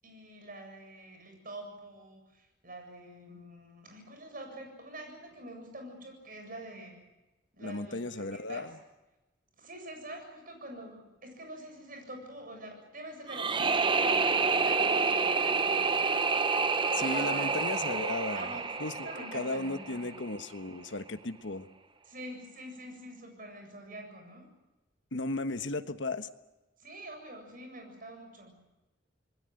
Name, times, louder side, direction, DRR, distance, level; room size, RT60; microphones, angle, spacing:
voice 1, 0.0-7.0 7.5-8.7 9.6-16.2 16.8-18.0 18.3-20.3 22.1-24.5 26.8-28.5, right 1 dB, 50° right, 4 dB, 7.8 m, -46 dB
voice 2, 7.6-8.7 16.9-18.5 18.8-21.7 25.1-26.3, left 2 dB, 80° left, 9 dB, 1.3 m, -35 dB
sound 1, 13.3-20.3, right 4 dB, 25° right, 0.8 m, -28 dB
27.5 x 21.0 x 7.9 m, 1.0 s
head